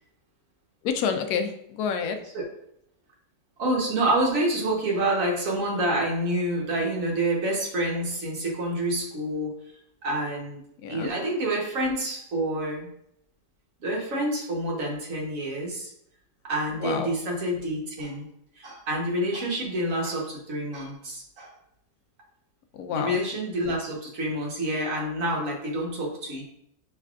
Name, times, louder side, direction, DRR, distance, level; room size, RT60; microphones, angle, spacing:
voice 1, 0.8-2.2 10.8-11.1 16.8-17.1 22.8-23.2, left 6 dB, 75° left, 6 dB, 1.0 m, -28 dB
voice 2, 3.6-9.5 10.0-10.6 10.9-12.9 13.8-15.9 16.4-18.3 18.6-21.5 22.9-26.5, right 1 dB, 55° right, -2 dB, 1.4 m, -28 dB
5.4 x 3.3 x 2.4 m, 0.73 s
omnidirectional pair, 1.7 m